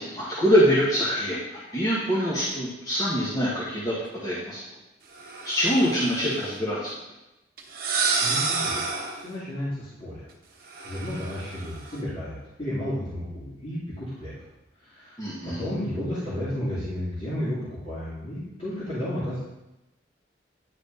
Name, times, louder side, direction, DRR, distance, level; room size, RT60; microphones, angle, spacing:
voice 1, 0.0-4.6 5.4-6.9 15.2-15.6, equal, 20° left, -8 dB, 1.4 m, -24 dB
sound 1, 5.1-6.5 7.6-9.3 10.7-12.0, right 4 dB, 50° right, 1.1 m, -29 dB
voice 2, 8.2-8.8 9.1-10.2 10.8-14.3 14.8-19.4, left 1 dB, 35° left, -13 dB, 2.6 m, -32 dB
10.0 x 4.9 x 4.0 m, 0.95 s
head